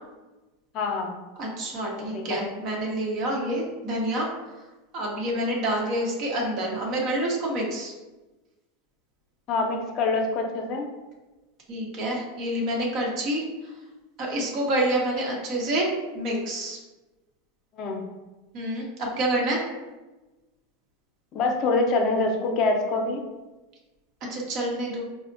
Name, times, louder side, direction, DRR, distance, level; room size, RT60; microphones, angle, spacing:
voice 1, 0.7-1.1 2.0-2.4 9.5-10.9 17.8-18.0 21.3-23.2, left 3 dB, 45° left, 2 dB, 0.6 m, -25 dB
voice 2, 1.4-4.3 4.9-7.9 11.7-13.4 14.2-16.8 18.5-19.6 24.3-25.0, right 1 dB, 50° right, -1 dB, 0.8 m, -27 dB
4.2 x 2.0 x 2.6 m, 1.1 s
hypercardioid pair, 105°, 0 cm